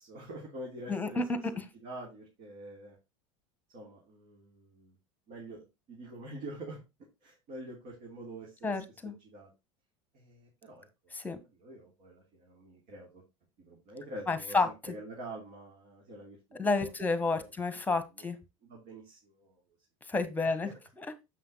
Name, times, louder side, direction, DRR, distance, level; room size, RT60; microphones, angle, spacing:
voice 1, 0.0-1.2 1.5-3.0 3.7-4.9 5.3-6.8 7.2-9.5 10.1-11.1 11.6-13.2 13.6-16.9 17.2-17.5 18.2-18.3 18.6-19.6 20.4-20.7, right 1 dB, 55° right, -1 dB, 3.1 m, -46 dB
voice 2, 0.9-1.6 8.6-9.1 11.1-11.4 14.3-14.9 16.6-18.4 20.1-20.7 21.0-21.1, left 3 dB, 10° left, 11 dB, 1.4 m, -30 dB
7.6 x 5.6 x 4.1 m, 0.25 s
hypercardioid pair, 100°, 16 cm